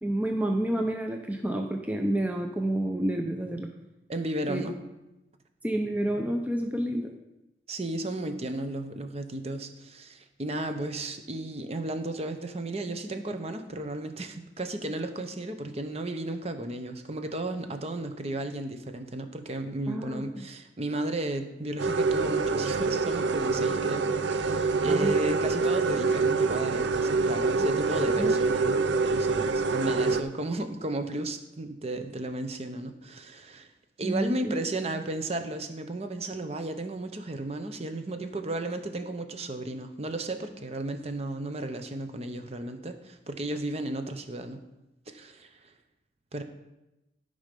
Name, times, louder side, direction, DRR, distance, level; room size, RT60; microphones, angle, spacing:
voice 1, 0.0-3.7 4.5-4.7 5.6-7.1 19.9-20.5 24.8-25.1 28.2-28.4 34.0-34.6, right 1 dB, 10° right, 3 dB, 0.6 m, -29 dB
voice 2, 4.1-4.7 7.7-33.7 34.0-44.6 45.1-45.7 46.3-46.4, right 2 dB, 35° right, 7 dB, 0.8 m, -34 dB
sound 1, 21.8-30.2, right 4 dB, 85° right, 0.6 m, -26 dB
12.0 x 5.4 x 5.3 m, 0.97 s
head